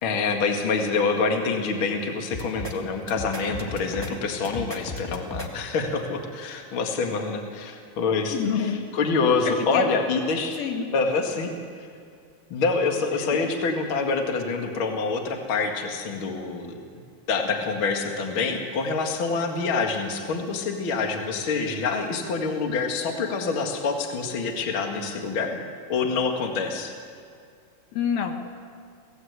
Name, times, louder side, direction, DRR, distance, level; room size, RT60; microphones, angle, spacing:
voice 1, 0.0-10.6 10.9-11.5 12.5-16.8 17.3-25.6 25.9-26.9, left 4 dB, 40° left, 3 dB, 2.3 m, -26 dB
sound 1, 2.3-2.7 3.1-4.1 4.4-5.5, left 2 dB, 15° left, 0.7 m, -34 dB
voice 2, 8.3-8.9 9.4-9.9 10.6-10.9 13.1-13.3 27.9-28.4, left 7 dB, 75° left, 5 dB, 3.2 m, -27 dB
25.0 x 17.0 x 8.1 m, 2.3 s
omnidirectional pair, 4.3 m